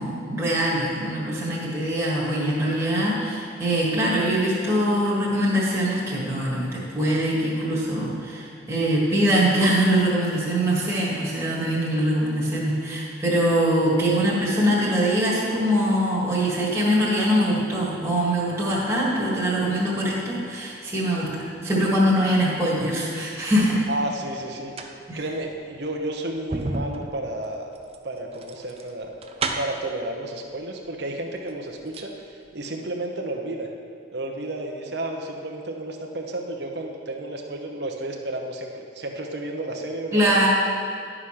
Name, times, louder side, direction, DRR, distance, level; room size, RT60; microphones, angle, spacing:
voice 1, 0.0-23.8 25.1-25.2 40.1-40.5, equal, 15° right, -7 dB, 1.7 m, -23 dB
voice 2, 13.9-14.3 23.9-27.7 28.0-29.1 29.6-33.7 34.1-40.5, right 1 dB, 55° right, 1 dB, 0.8 m, -32 dB
sound 1, 23.0-23.8 24.5-29.9 30.9-31.0 31.3-32.2 32.4-32.5, right 3 dB, 30° right, 0.5 m, -33 dB
11.5 x 4.9 x 5.7 m, 2.4 s
head